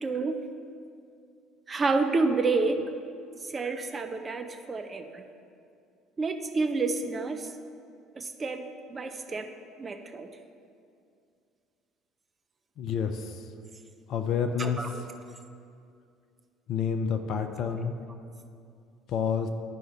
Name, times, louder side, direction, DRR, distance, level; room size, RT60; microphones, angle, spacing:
voice 1, 0.0-0.4 1.7-2.8 3.4-5.2 6.2-7.5 8.2-8.6 8.9-9.5 9.8-10.3 14.6-15.0, right 3 dB, 30° right, 6 dB, 0.5 m, -29 dB
voice 2, 12.8-13.3 14.1-14.8 16.7-18.0 19.1-19.5, left 7 dB, 55° left, 7 dB, 0.4 m, -28 dB
10.0 x 4.8 x 4.2 m, 2.4 s
figure-of-eight pair, 55°, 0 cm